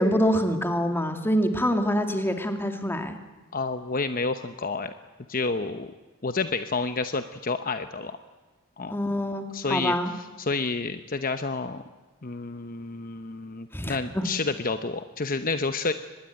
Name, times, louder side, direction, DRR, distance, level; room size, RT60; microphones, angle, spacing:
voice 1, 0.0-3.1 8.9-10.1 13.7-14.2, equal, 10° left, 6 dB, 2.2 m, -25 dB
voice 2, 3.5-4.9 5.3-5.9 6.2-8.2 8.8-9.0 9.5-9.9 10.4-11.8 12.2-15.9, left 3 dB, 40° left, 9 dB, 0.9 m, -29 dB
24.0 x 20.5 x 9.1 m, 1.3 s
head